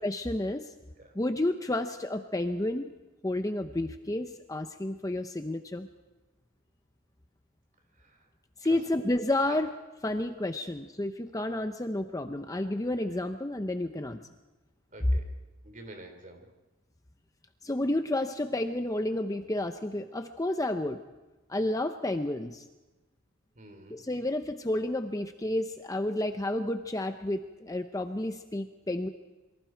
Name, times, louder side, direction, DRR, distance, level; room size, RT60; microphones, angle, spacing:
voice 1, 0.0-0.7 1.1-2.9 3.2-5.9 8.6-9.7 10.0-14.2 17.6-21.0 21.5-22.6 23.9-29.1, left 1 dB, 15° left, 7 dB, 0.6 m, -31 dB
voice 2, 14.9-15.3 15.6-16.5 23.6-24.2, right 2 dB, 35° right, 5 dB, 3.4 m, -47 dB
27.5 x 23.5 x 4.6 m, 1.1 s
head